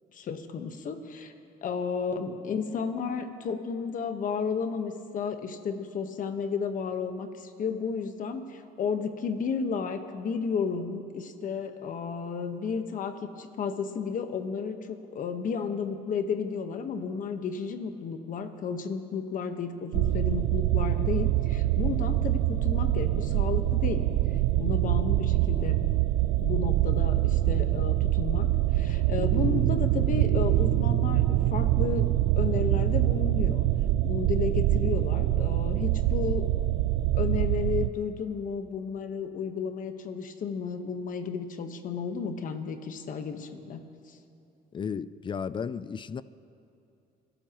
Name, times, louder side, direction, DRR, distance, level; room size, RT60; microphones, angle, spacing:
voice 1, 0.1-1.3 1.6-24.0 24.5-25.8 26.4-28.5 28.7-32.1 32.4-33.6 34.0-36.5 37.1-44.2, left 6 dB, 50° left, 1.3 m, -32 dB
sound 1, 19.9-37.9, right 15 dB, 90° right, 0.4 m, -25 dB
voice 2, 44.7-46.2, left 6 dB, 30° left, 0.4 m, -34 dB
29.5 x 13.5 x 3.1 m
cardioid pair, 110°, 17 cm